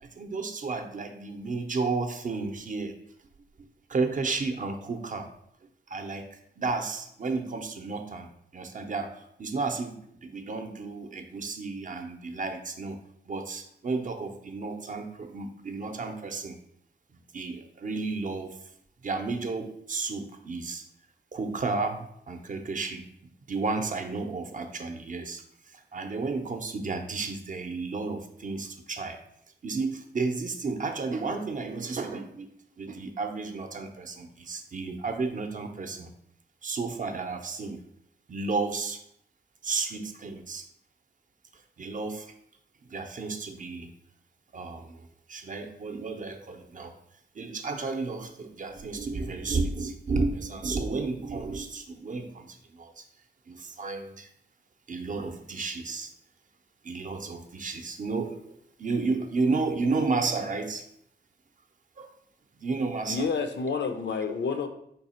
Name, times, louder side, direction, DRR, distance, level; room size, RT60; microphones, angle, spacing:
voice 1, 0.0-2.9 3.6-5.3 5.9-8.3 8.5-13.0 13.3-16.6 17.3-18.6 19.0-20.8 21.3-23.1 23.5-25.4 25.9-29.2 29.6-32.5 32.8-36.1 36.6-37.8 38.3-39.0 39.6-40.6 41.8-42.3 42.9-43.9 44.5-46.9 47.4-52.9 53.5-54.3 54.9-56.1 56.8-58.4 58.8-60.8 62.0-62.1 62.6-63.3, right 3 dB, 45° right, 6 dB, 0.5 m, -32 dB
voice 2, 63.1-64.7, left 5 dB, 80° left, 7 dB, 0.5 m, -29 dB
4.6 x 2.8 x 4.2 m, 0.71 s
wide cardioid pair, 135°, 18 cm